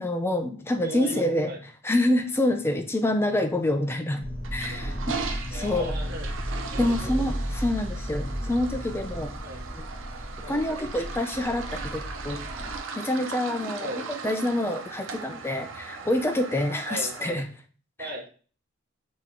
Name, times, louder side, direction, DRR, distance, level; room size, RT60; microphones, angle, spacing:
voice 1, 0.0-1.5 1.8-4.2 4.5-5.2 5.5-6.0 6.8-9.3 9.7-9.8 10.5-12.4 13.0-13.9 14.2-17.5 18.0-18.1, left 1 dB, 10° left, 6 dB, 0.4 m, -27 dB
voice 2, 0.8-1.6 5.5-6.3 6.7-7.3 9.4-9.7 10.4-10.6 13.8-14.3 16.9-17.2 18.0-18.3, equal, 55° right, 1 dB, 1.0 m, -37 dB
sound 1, 4.2-12.8, equal, 40° left, 2.1 m, -34 dB
Toilet flush, 4.4-17.3, right 5 dB, 75° right, 0.5 m, -39 dB
3.8 x 2.9 x 3.7 m, 0.40 s
head